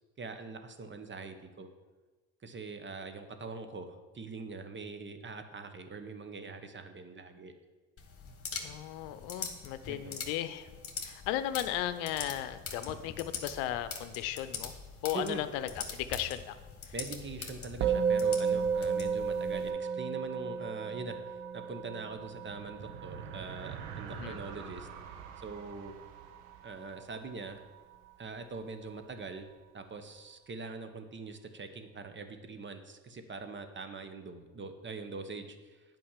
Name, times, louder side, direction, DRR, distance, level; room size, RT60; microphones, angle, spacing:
voice 1, 0.2-1.7 2.4-7.5 9.9-10.2 15.1-15.4 16.9-24.9 25.4-25.9 26.6-27.6 28.2-29.5 29.7-35.8, right 4 dB, 30° right, 8 dB, 1.2 m, -43 dB
sound 1, 8.0-19.7, left 5 dB, 35° left, 1.7 m, -43 dB
voice 2, 8.6-10.7 11.0-14.7 15.0-16.6 16.9-17.0 24.2-24.4, left 12 dB, 75° left, 12 dB, 0.7 m, -36 dB
Musical instrument, 17.8-27.3, right 6 dB, 50° right, 1.1 m, -34 dB
sound 2, 22.1-27.7, right 6 dB, 80° right, 1.1 m, -47 dB
8.6 x 5.4 x 7.3 m, 1.3 s
hypercardioid pair, 75°, 39 cm